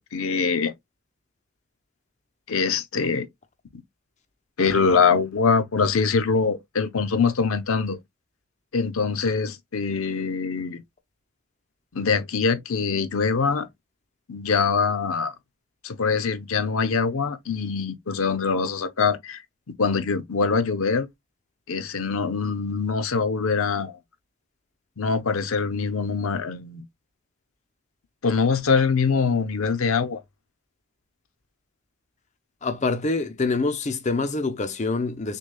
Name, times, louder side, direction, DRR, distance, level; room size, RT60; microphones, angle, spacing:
voice 1, 0.1-0.7 2.5-3.3 4.6-8.0 8.7-10.8 11.9-13.7 14.3-15.3 15.8-19.4 19.8-21.1 21.7-24.0 25.0-26.8 28.2-30.2, left 5 dB, 70° left, 0.6 m, -23 dB
voice 2, 32.6-35.4, left 3 dB, 30° left, 0.5 m, -25 dB
6.3 x 2.2 x 2.2 m
head